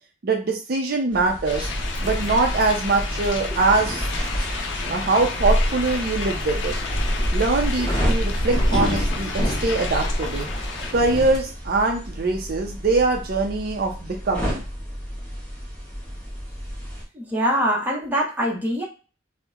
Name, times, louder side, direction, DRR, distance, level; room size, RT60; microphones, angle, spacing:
voice 1, 0.2-1.7 2.0-4.3 4.9-6.7 7.3-10.5 10.9-14.6, right 3 dB, 50° right, 2 dB, 0.5 m, -23 dB
sound 1, 1.1-17.0, equal, 10° left, 1.1 m, -31 dB
sound 2, 1.5-10.9, left 5 dB, 80° left, 0.5 m, -33 dB
sound 3, 1.5-11.4, equal, 25° left, 0.7 m, -28 dB
voice 2, 17.1-18.8, equal, 10° right, -3 dB, 0.8 m, -23 dB
2.8 x 2.0 x 3.5 m, 0.35 s
head